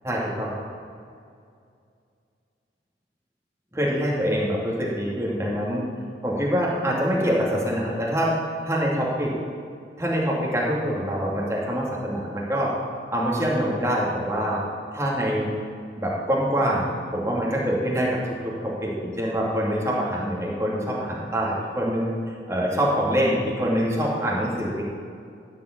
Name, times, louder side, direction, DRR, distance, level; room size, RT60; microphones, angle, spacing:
voice 1, 0.0-0.5 3.7-5.8 6.2-8.3 8.6-9.3 10.0-12.7 13.1-14.6 14.9-15.5 16.0-18.1 18.6-22.1 22.5-24.8, equal, 15° right, -5 dB, 2.7 m, -25 dB
15.0 x 5.3 x 8.6 m, 2.3 s
head